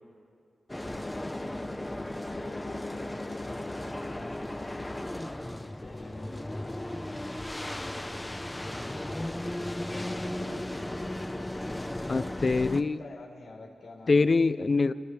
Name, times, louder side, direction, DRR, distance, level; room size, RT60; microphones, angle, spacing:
sound 1, 0.7-12.8, left 1 dB, 15° left, 1.0 m, -36 dB
voice 1, 2.1-5.1 5.6-8.3 8.8-11.2 12.8-14.3, left 3 dB, 75° left, -1 dB, 4.2 m, -50 dB
voice 2, 12.1-13.0 14.1-14.9, left 3 dB, 45° left, 13 dB, 0.7 m, -24 dB
29.5 x 27.0 x 3.5 m, 2.4 s
wide cardioid pair, 90°, 0 cm